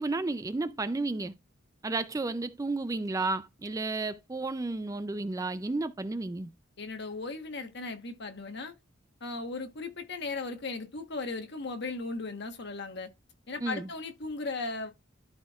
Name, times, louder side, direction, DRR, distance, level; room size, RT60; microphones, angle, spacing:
voice 1, 0.0-1.3 1.8-6.5 13.6-13.9, right 3 dB, 15° right, 0.3 m, -32 dB
voice 2, 6.8-8.7 9.2-13.1 13.5-14.9, left 3 dB, 60° left, 1.2 m, -37 dB
12.5 x 4.4 x 2.3 m
head